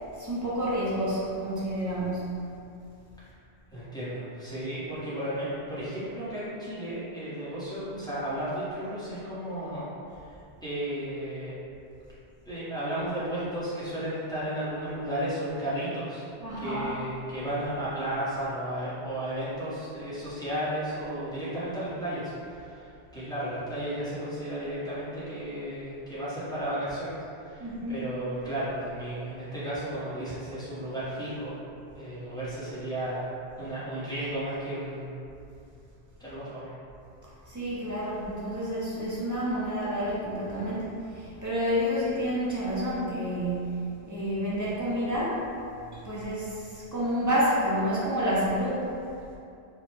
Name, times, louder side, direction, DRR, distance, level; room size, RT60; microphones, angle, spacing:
voice 1, 0.2-2.2 16.4-16.9 27.6-28.0 37.5-43.8 44.1-45.4 45.9-48.9, equal, 25° right, -9 dB, 0.4 m, -29 dB
voice 2, 3.7-9.8 10.6-11.5 12.5-16.3 16.6-22.9 23.1-27.1 27.4-31.6 31.9-33.3 33.6-35.1 36.2-36.6, right 1 dB, 5° left, -13 dB, 0.7 m, -33 dB
2.9 x 2.0 x 3.2 m, 2.5 s
omnidirectional pair, 1.2 m